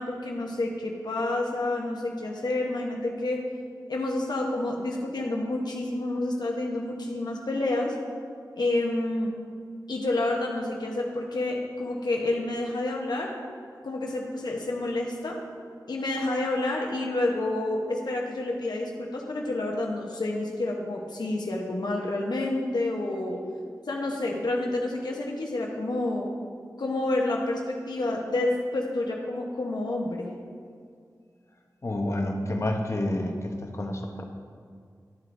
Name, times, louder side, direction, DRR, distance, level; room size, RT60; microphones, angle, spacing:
voice 1, 0.0-3.5 3.9-7.9 8.6-9.3 9.9-13.3 13.8-15.4 15.9-23.4 23.9-26.3 26.8-30.3, left 2 dB, 80° left, -1 dB, 0.9 m, -29 dB
voice 2, 31.8-34.2, left 1 dB, 40° left, 3 dB, 0.9 m, -29 dB
12.0 x 7.7 x 2.6 m, 2.1 s
wide cardioid pair, 80°, 7 cm